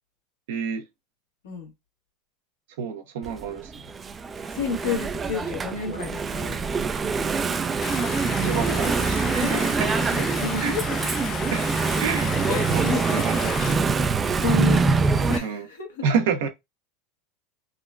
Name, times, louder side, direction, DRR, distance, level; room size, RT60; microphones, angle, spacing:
voice 1, 0.5-0.9 2.8-3.7 8.4-10.3 10.6-10.8 11.5-11.7 12.0-12.3 12.7-13.5 15.4-15.7 16.0-16.5, right 6 dB, 80° right, 0.8 m, -28 dB
Engine / Mechanisms, 3.2-15.4, right 4 dB, 25° right, 0.3 m, -24 dB
voice 2, 4.5-6.7 9.4-9.6 10.1-10.9 12.5-13.2 14.4-16.0, left 4 dB, 90° left, 1.3 m, -30 dB
Stream, 7.8-13.7, left 8 dB, 45° left, 0.4 m, -34 dB
3.7 x 2.1 x 2.3 m
supercardioid pair, 110°, 0 cm